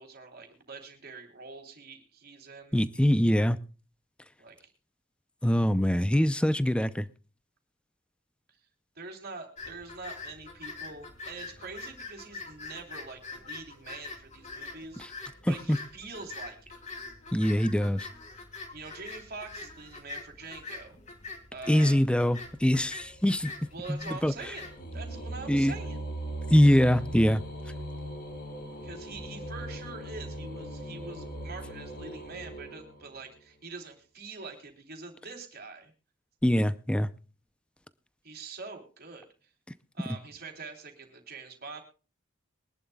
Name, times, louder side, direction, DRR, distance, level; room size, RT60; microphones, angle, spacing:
voice 1, 0.0-2.8 4.4-4.7 8.5-8.6 8.9-16.8 18.7-21.0 21.5-22.0 23.7-24.7 24.9-26.0 28.8-35.9 38.2-39.5 39.9-41.8, right 4 dB, 50° right, 3.4 m, -44 dB
voice 2, 2.7-3.6 5.4-7.1 15.4-15.8 17.3-18.1 21.7-23.5 23.9-24.3 25.5-25.7 26.5-27.4 36.4-37.1, equal, 5° left, 0.6 m, -23 dB
sound 1, 9.6-24.8, left 3 dB, 35° left, 2.9 m, -44 dB
sound 2, 22.5-33.4, right 1 dB, 55° left, 4.8 m, -40 dB
23.5 x 11.5 x 2.3 m
head